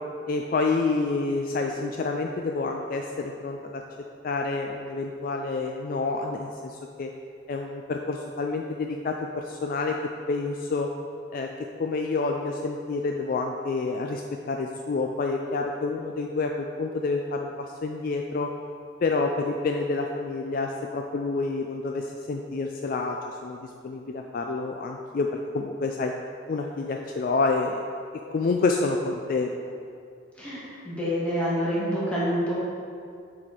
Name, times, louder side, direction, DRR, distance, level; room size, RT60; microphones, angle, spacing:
voice 1, 0.3-3.8 4.2-7.1 7.5-10.0 10.3-10.9 11.3-17.5 17.8-18.5 19.0-25.3 25.5-26.1 26.5-27.8 28.3-29.6, left 3 dB, 45° left, 2 dB, 0.3 m, -28 dB
voice 2, 30.4-32.5, equal, 5° left, -9 dB, 1.7 m, -27 dB
7.4 x 4.2 x 4.9 m, 2.3 s
head